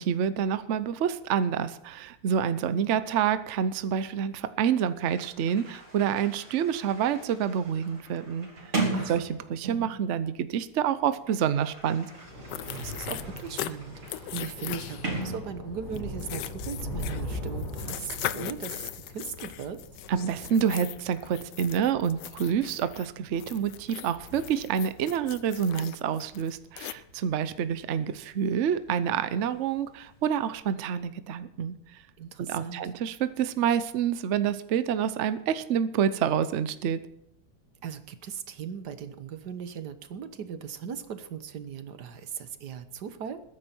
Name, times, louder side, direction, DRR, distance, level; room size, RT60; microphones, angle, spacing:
voice 1, 0.0-8.5 9.1-12.1 20.1-32.0 32.5-37.0, right 8 dB, 75° right, 12 dB, 0.6 m, -28 dB
Sliding door, 5.0-10.1 11.0-16.0, right 3 dB, 35° right, 3.3 m, -37 dB
voice 2, 8.9-9.2 12.7-19.8 32.2-32.8 37.8-43.4, right 7 dB, 60° right, 10 dB, 1.5 m, -38 dB
Thunder / Rain, 11.7-28.3 28.6-29.1 29.3-29.5, left 1 dB, 50° left, 4.5 m, -41 dB
sound 1, 12.5-13.7 14.1-15.2 15.9-23.1 23.4-26.9, left 12 dB, 70° left, 1.1 m, -39 dB
21.0 x 10.0 x 4.5 m, 0.77 s
omnidirectional pair, 2.2 m